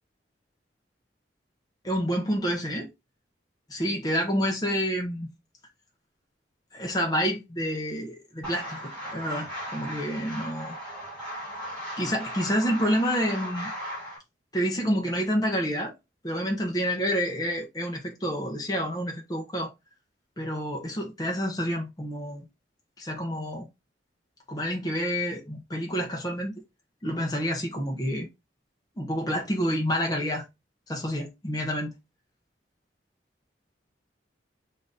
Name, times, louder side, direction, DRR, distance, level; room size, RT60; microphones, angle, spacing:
voice 1, 1.8-2.9 3.7-5.3 6.7-10.7 11.4-11.5 12.0-13.7 14.5-15.9 16.2-19.7 20.4-22.4 23.0-23.7 24.5-26.5 27.0-28.3 29.0-30.4 30.9-31.9, equal, 20° left, 0.8 m, -28 dB
sound 1, 8.4-14.2, equal, 5° left, 2.1 m, -37 dB
3.7 x 2.6 x 3.7 m
head